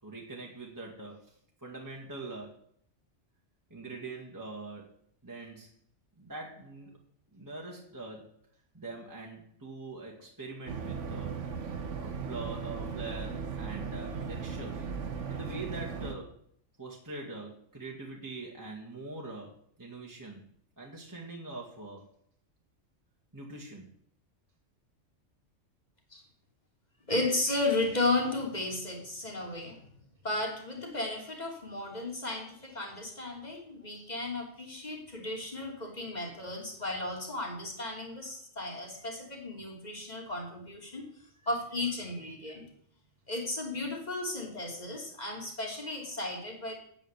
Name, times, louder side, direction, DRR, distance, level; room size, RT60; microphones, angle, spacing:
voice 1, 0.0-2.6 3.7-5.0 5.2-5.7 6.2-6.9 7.3-8.4 8.7-11.4 12.0-14.9 15.3-16.4 16.8-20.4 20.8-22.1 23.3-23.9, right 3 dB, 15° right, -3 dB, 2.0 m, -43 dB
sound 1, 10.7-16.1, right 5 dB, 75° right, 1.5 m, -37 dB
voice 2, 27.1-29.8 30.2-41.1 41.4-42.6 43.3-46.7, left 2 dB, 35° left, 1 dB, 3.2 m, -34 dB
9.0 x 8.8 x 8.2 m, 0.64 s
omnidirectional pair, 1.3 m